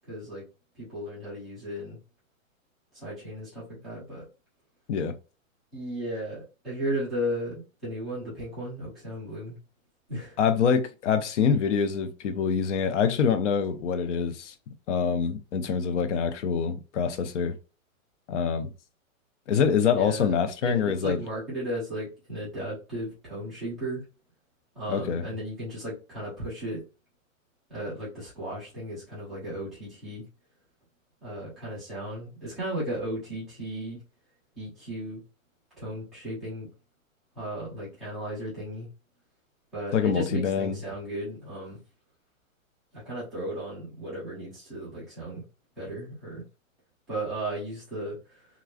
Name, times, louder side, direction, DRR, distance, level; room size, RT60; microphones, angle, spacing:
voice 1, 0.1-0.4 0.7-2.0 2.9-4.2 5.7-9.6 10.1-10.4 19.9-24.0 24.7-26.8 27.7-30.2 31.2-34.0 34.6-35.2 35.8-36.7 37.3-38.9 39.7-41.8 42.9-45.4 45.8-46.4 47.1-48.5, right 1 dB, ahead, 0.3 m, -35 dB
voice 2, 10.4-14.5 14.9-17.6 18.3-18.7 19.5-21.2 24.9-25.2 39.9-40.8, left 6 dB, 60° left, 0.7 m, -25 dB
3.0 x 2.5 x 2.3 m
hypercardioid pair, 135°, 42 cm